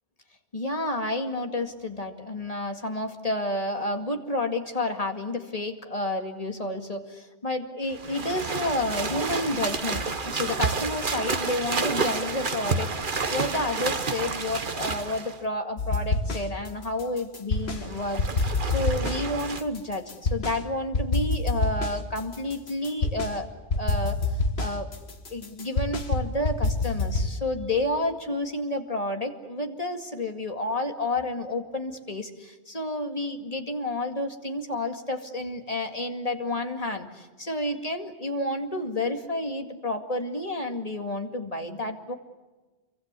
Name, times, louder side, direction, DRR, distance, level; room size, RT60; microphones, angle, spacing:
voice 1, 0.5-23.5 23.7-24.2 24.6-24.9 25.3-42.1, left 1 dB, 35° left, 5 dB, 2.3 m, -30 dB
sound 1, 7.9-15.4 17.7-19.6, right 4 dB, 50° right, 1.5 m, -30 dB
sound 2, 15.8-16.7 17.0-17.9 18.2-20.6 20.9-23.4 23.7-27.3, left 3 dB, 70° left, 2.0 m, -27 dB
27.5 x 24.5 x 8.3 m, 1.2 s
omnidirectional pair, 1.1 m